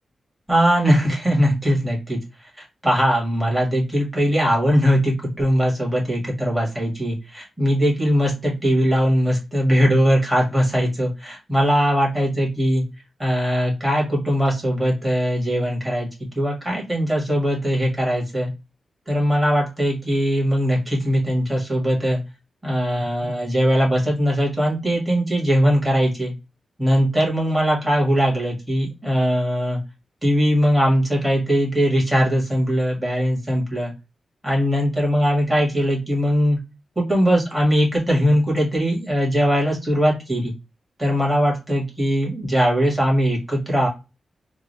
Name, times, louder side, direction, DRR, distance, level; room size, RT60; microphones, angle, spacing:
voice 1, 0.5-2.2 2.6-12.8 13.2-16.1 16.4-18.5 19.1-22.2 22.6-26.3 26.8-29.8 30.2-33.9 34.4-36.6 37.0-40.5 41.0-43.9, equal, 5° right, -3 dB, 1.8 m, -20 dB
3.7 x 2.4 x 3.1 m, 0.26 s
wide cardioid pair, 150°, 0 cm